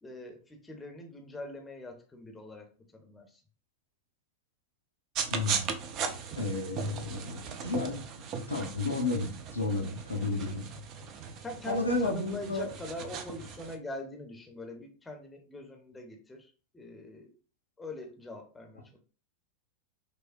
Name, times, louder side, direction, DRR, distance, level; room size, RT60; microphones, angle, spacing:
voice 1, 0.0-3.4 11.4-17.3 17.8-19.0, left 2 dB, 10° left, 3 dB, 0.7 m, -43 dB
sound 1, 5.1-13.7, right 5 dB, 35° right, 0.5 m, -38 dB
voice 2, 5.3-5.7 6.4-8.0 8.5-10.7 11.6-12.7, left 2 dB, 80° left, 0 dB, 0.7 m, -32 dB
5.2 x 2.1 x 2.5 m, 0.38 s
figure-of-eight pair, 90°, 0 cm